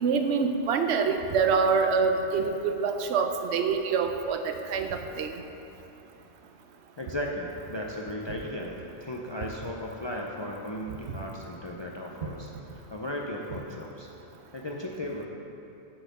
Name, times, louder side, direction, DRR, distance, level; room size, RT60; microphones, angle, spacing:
voice 1, 0.0-5.3, right 5 dB, 85° right, 6 dB, 0.9 m, -26 dB
voice 2, 7.0-14.1 14.5-15.3, left 1 dB, 40° left, -1 dB, 0.4 m, -36 dB
7.6 x 4.2 x 6.6 m, 2.8 s
omnidirectional pair, 1.1 m